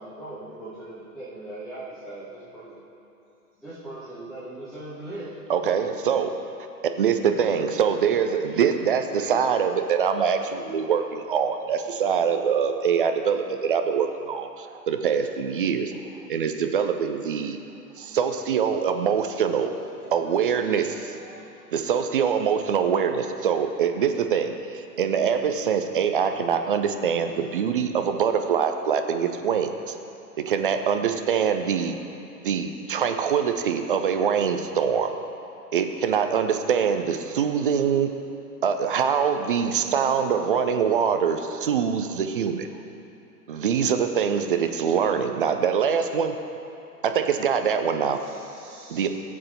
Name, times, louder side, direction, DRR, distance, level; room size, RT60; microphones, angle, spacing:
voice 1, 0.0-2.8 3.6-5.7 6.1-6.2 7.3-7.4 7.7-7.8, right 1 dB, ahead, -12 dB, 1.6 m, -39 dB
voice 2, 5.5-6.3 6.8-15.9 16.3-17.6 18.0-19.7 20.1-21.1 21.7-29.9 30.5-31.9 32.4-35.1 35.7-38.1 38.6-42.7 43.5-46.3 47.0-48.2 48.9-49.1, right 7 dB, 35° right, 7 dB, 0.5 m, -24 dB
voice 3, 20.6-21.5 48.2-49.1, right 2 dB, 65° right, -5 dB, 1.5 m, -48 dB
15.5 x 7.5 x 2.7 m, 2.8 s
figure-of-eight pair, 110°, 46 cm